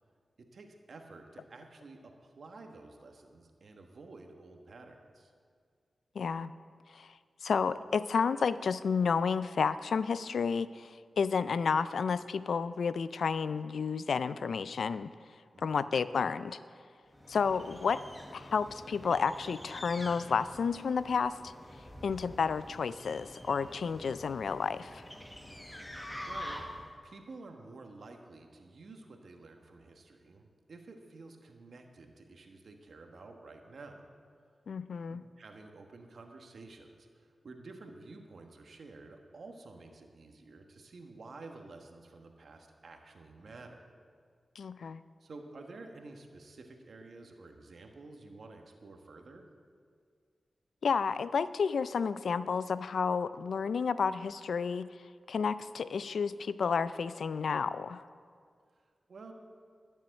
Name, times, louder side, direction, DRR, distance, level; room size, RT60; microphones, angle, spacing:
voice 1, 0.4-5.3 15.5-15.9 26.0-26.6 27.0-34.1 35.1-43.9 45.2-49.4 58.7-59.3, right 3 dB, 70° right, 4 dB, 1.3 m, -51 dB
voice 2, 6.2-6.5 6.9-7.1 7.4-15.1 15.6-16.6 17.3-18.0 18.3-21.5 22.0-25.0 34.7-35.2 44.6-45.0 50.8-54.9 55.3-58.0, left 5 dB, 80° left, 15 dB, 0.3 m, -31 dB
sound 1, 17.1-27.0, equal, 15° left, 1.3 m, -46 dB
13.0 x 7.1 x 6.5 m, 2.1 s
cardioid pair, 40°, 0 cm